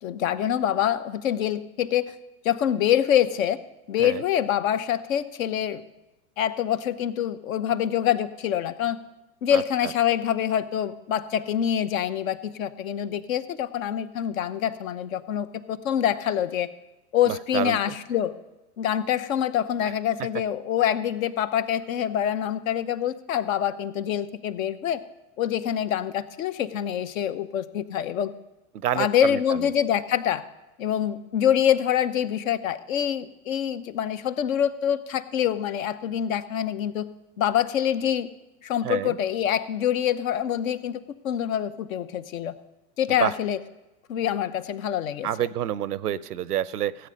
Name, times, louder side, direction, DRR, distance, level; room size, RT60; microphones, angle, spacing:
voice 1, 0.0-2.2 2.4-3.6 3.9-5.8 6.4-9.0 9.4-16.7 17.1-18.3 18.8-25.0 25.4-28.3 28.9-30.4 30.8-37.1 37.4-38.3 38.6-42.6 43.0-43.6 44.1-45.3, left 10 dB, 65° left, 13 dB, 0.9 m, -25 dB
voice 2, 9.5-9.9 17.3-17.9 28.7-29.6 38.8-39.2 43.2-43.3 45.2-47.1, right 11 dB, 85° right, 19 dB, 0.6 m, -28 dB
16.0 x 8.0 x 5.2 m, 1.0 s
hypercardioid pair, 100°, 45 cm